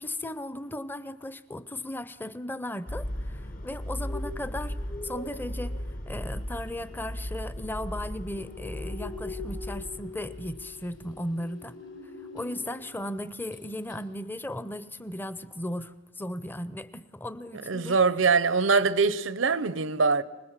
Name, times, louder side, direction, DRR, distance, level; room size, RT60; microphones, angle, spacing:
voice 1, 0.0-11.8 12.3-18.0, left 1 dB, 10° left, 0.7 m, -36 dB
sound 1, 2.9-11.2, equal, 45° left, 1.3 m, -37 dB
sound 2, 3.8-13.0 13.3-13.6 13.9-14.0, left 3 dB, 70° left, 4.2 m, -45 dB
voice 2, 17.6-20.2, right 4 dB, 90° right, 0.9 m, -23 dB
25.0 x 20.0 x 7.4 m
head